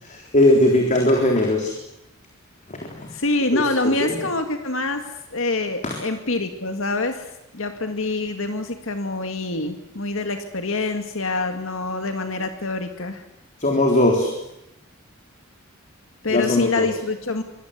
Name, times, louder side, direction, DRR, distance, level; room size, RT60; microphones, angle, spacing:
voice 1, 0.0-1.7 2.7-3.1 3.5-4.2 13.6-14.3 16.3-16.9, left 1 dB, 40° left, 1 dB, 3.8 m, -19 dB
voice 2, 3.1-5.0 5.3-13.2 16.2-17.4, left 2 dB, 70° left, 6 dB, 2.1 m, -26 dB
25.5 x 23.0 x 8.3 m, 0.86 s
head